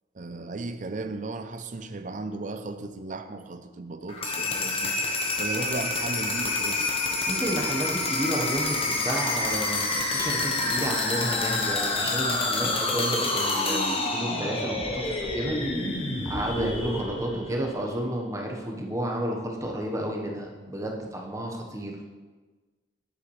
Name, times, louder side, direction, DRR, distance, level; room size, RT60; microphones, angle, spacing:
voice 1, 0.1-4.9 5.4-7.0 16.5-16.8, right 3 dB, 45° right, 9 dB, 0.6 m, -35 dB
sound 1, 4.1-17.9, left 2 dB, 30° left, 1.0 m, -28 dB
voice 2, 7.2-15.6 16.2-22.0, right 1 dB, 20° right, 0 dB, 1.2 m, -31 dB
10.0 x 8.0 x 3.3 m, 1.3 s
head